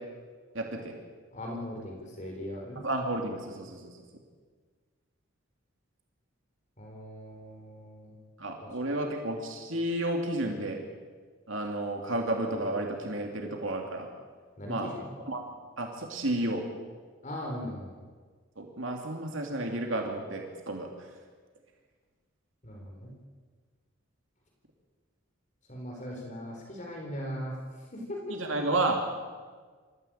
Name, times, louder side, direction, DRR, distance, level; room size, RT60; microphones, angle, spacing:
voice 1, 0.5-0.9 2.8-4.0 8.4-10.8 11.5-14.1 14.7-14.9 15.2-15.5 15.8-16.6 18.6-20.9 28.3-29.0, right 1 dB, 70° right, 2 dB, 2.8 m, -31 dB
voice 2, 1.3-2.8 6.8-8.2 8.6-8.7 14.6-15.1 17.2-18.0 22.6-23.1 25.7-27.6 27.9-28.5, equal, 35° left, 1 dB, 4.2 m, -39 dB
26.0 x 14.5 x 8.9 m, 1.5 s
head